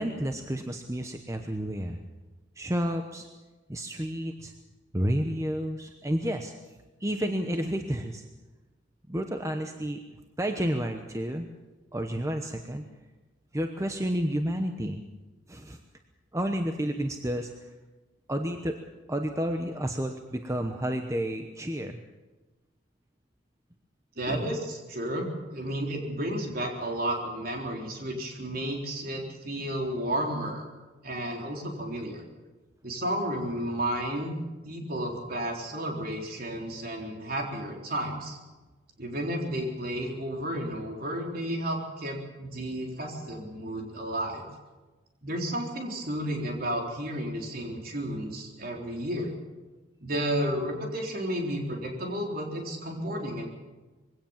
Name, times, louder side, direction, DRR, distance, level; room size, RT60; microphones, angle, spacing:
voice 1, 0.0-2.0 2.6-3.3 3.7-4.5 4.9-6.5 7.0-8.2 9.1-10.0 10.4-11.5 11.9-12.8 13.5-15.0 15.5-15.8 16.3-17.5 18.3-18.7 19.1-22.0 24.3-24.4, equal, 15° right, 5 dB, 0.9 m, -30 dB
voice 2, 24.2-30.6 31.0-32.2 32.8-34.4 34.6-38.4 39.0-44.4 45.2-49.3 50.0-53.5, right 1 dB, 50° right, 1 dB, 3.9 m, -32 dB
22.0 x 17.0 x 7.3 m, 1.2 s
head